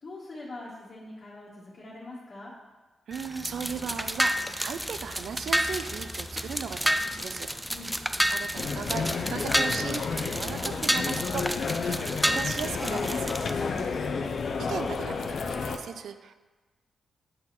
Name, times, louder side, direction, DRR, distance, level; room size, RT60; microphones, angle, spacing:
voice 1, 0.0-2.5 7.7-7.9 13.5-14.0, left 2 dB, 40° left, -6 dB, 1.7 m, -43 dB
sound 1, 3.1-13.5, equal, 5° right, 0.4 m, -30 dB
voice 2, 3.1-7.5 8.0-13.3 14.7-16.3, right 7 dB, 75° right, 9 dB, 0.4 m, -37 dB
sound 2, 8.6-15.8, left 5 dB, 60° left, 0.6 m, -31 dB
9.1 x 4.0 x 4.3 m, 1.3 s
cardioid pair, 90°, 0 cm